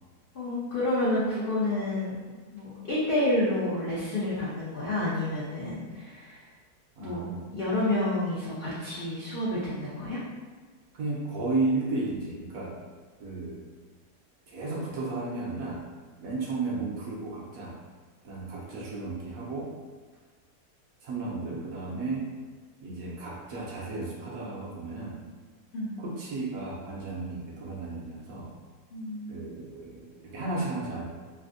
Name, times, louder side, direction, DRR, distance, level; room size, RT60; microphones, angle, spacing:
voice 1, 0.3-2.2 2.5-6.4 7.0-7.2 7.5-10.2 25.7-26.0 28.9-29.3, left 1 dB, 70° left, -9 dB, 0.5 m, -29 dB
voice 2, 7.0-7.4 10.9-12.7 13.2-13.6 14.5-15.8 16.2-17.8 18.2-19.7 21.0-22.2 22.8-25.2 26.0-28.5 29.3-31.0, right 3 dB, 65° right, -4 dB, 1.0 m, -33 dB
3.3 x 2.5 x 2.5 m, 1.4 s
omnidirectional pair, 1.7 m